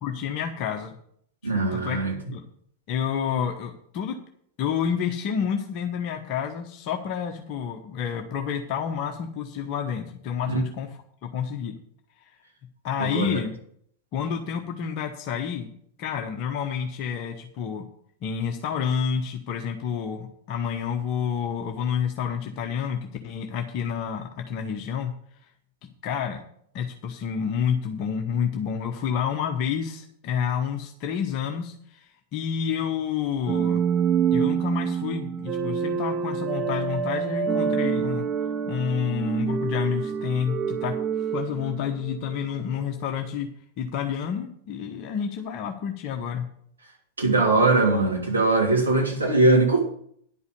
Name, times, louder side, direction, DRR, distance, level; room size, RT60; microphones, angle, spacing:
voice 1, 0.0-1.0 1.4-2.4 2.9-4.2 4.6-11.8 12.8-13.5 14.1-15.7 16.0-17.8 18.2-25.1 25.8-26.4 26.7-33.8 34.3-38.3 38.7-43.5 43.8-46.5, left 7 dB, 40° left, 4 dB, 1.1 m, -29 dB
voice 2, 1.4-2.1 10.5-10.6 13.0-13.4 47.2-49.8, right 3 dB, 75° right, -1 dB, 3.0 m, -21 dB
sound 1, 33.5-42.4, right 7 dB, 25° right, 0.8 m, -27 dB
10.5 x 5.5 x 8.2 m, 0.65 s
figure-of-eight pair, 90°, 0 cm